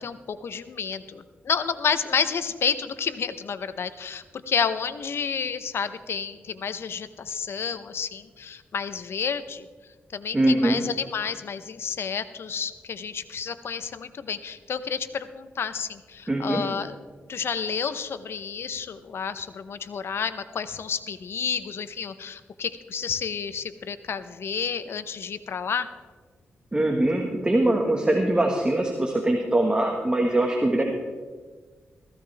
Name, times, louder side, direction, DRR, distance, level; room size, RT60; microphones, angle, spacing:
voice 1, 0.0-9.7 10.1-17.0 17.3-25.9, left 6 dB, 65° left, 12 dB, 0.8 m, -30 dB
voice 2, 10.3-10.8 16.3-16.7 26.7-30.8, right 1 dB, 20° right, 2 dB, 1.6 m, -22 dB
15.5 x 15.0 x 3.5 m, 1.4 s
cardioid pair, 80°, 4 cm